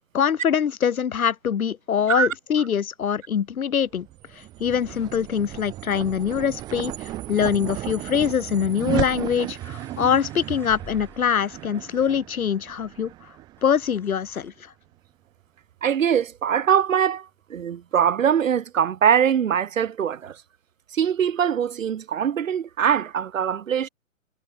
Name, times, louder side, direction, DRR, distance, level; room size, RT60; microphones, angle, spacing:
voice 1, 0.1-4.1 4.4-13.1 13.6-14.7, left 8 dB, 90° left, 0.6 m, -24 dB
sound 1, 3.9-14.5, right 15 dB, 10° right, 0.7 m, -34 dB
sound 2, 4.7-6.7, left 8 dB, 55° left, 7.0 m, -56 dB
sound 3, 9.4-12.6 13.6-14.5, left 3 dB, 5° left, 3.9 m, -51 dB
voice 2, 15.8-20.4 20.9-23.9, right 8 dB, 70° right, 0.7 m, -22 dB
figure-of-eight pair, 130°, 41 cm